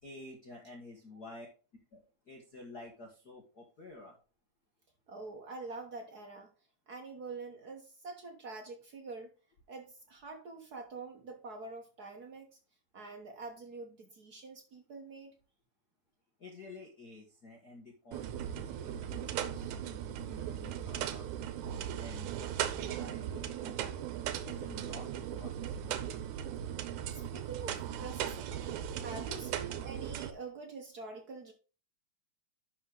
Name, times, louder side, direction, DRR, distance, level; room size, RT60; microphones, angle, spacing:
voice 1, 0.0-1.5 1.9-2.0 2.3-4.2 16.4-23.9 24.4-26.0 29.3-29.6, left 2 dB, 50° left, 0 dB, 1.3 m, -51 dB
voice 2, 5.1-6.5 6.9-9.3 9.7-12.5 12.9-15.3 27.1-28.6 29.0-31.5, right 3 dB, 60° right, 2 dB, 1.0 m, -45 dB
sound 1, 18.1-30.3, right 10 dB, 80° right, 2.2 m, -38 dB
11.5 x 4.9 x 3.9 m, 0.35 s
omnidirectional pair, 3.4 m